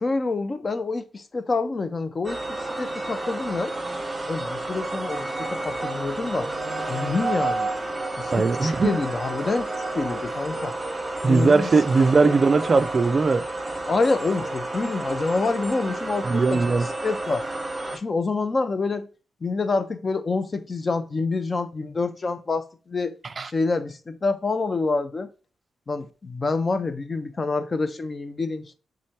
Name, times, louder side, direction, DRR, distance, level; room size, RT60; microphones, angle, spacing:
voice 1, 0.0-2.4 2.8-3.7 4.3-6.5 6.9-7.7 8.2-10.7 11.2-11.7 12.0-12.3 13.9-17.5 17.9-19.1 19.4-23.2 23.4-25.3 25.9-28.8, left 3 dB, 30° left, 0.5 m, -27 dB
sound 1, 2.2-18.0, right 2 dB, 15° right, 1.0 m, -30 dB
voice 2, 8.3-9.0 11.2-13.5 16.2-16.9 23.4-23.5, right 4 dB, 35° right, 0.3 m, -19 dB
3.7 x 3.2 x 4.1 m
cardioid pair, 115°, 0 cm